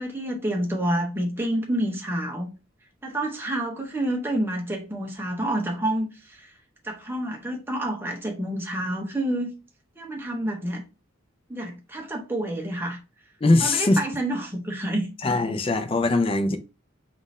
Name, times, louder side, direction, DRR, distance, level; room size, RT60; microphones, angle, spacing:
voice 1, 0.0-2.5 3.0-6.5 6.8-9.5 10.0-10.8 11.5-13.0 13.6-15.1, right 1 dB, 10° right, 0.7 m, -28 dB
voice 2, 13.4-14.0 15.2-16.6, left 2 dB, 25° left, 0.4 m, -21 dB
3.7 x 2.5 x 4.0 m
head